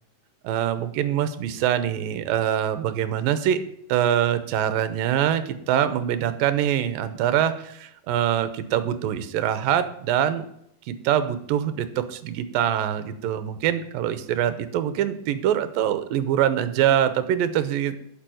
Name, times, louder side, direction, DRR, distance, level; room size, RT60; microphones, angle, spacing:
voice 1, 0.4-3.6 3.9-10.5 10.9-18.1, right 10 dB, 80° right, 12 dB, 2.6 m, -24 dB
10.5 x 7.0 x 9.1 m, 0.73 s
omnidirectional pair, 4.1 m